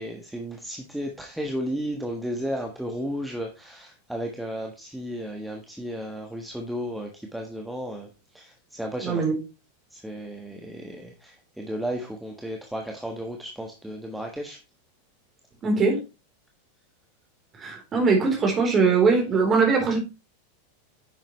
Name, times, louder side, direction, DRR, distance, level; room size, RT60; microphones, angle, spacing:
voice 1, 0.0-9.2 9.9-14.6, equal, 5° right, 1.4 m, -34 dB
voice 2, 9.0-9.3 15.6-16.0 17.6-20.0, right 4 dB, 25° right, 3.9 m, -21 dB
10.0 x 7.4 x 3.2 m
figure-of-eight pair, 90°, 0 cm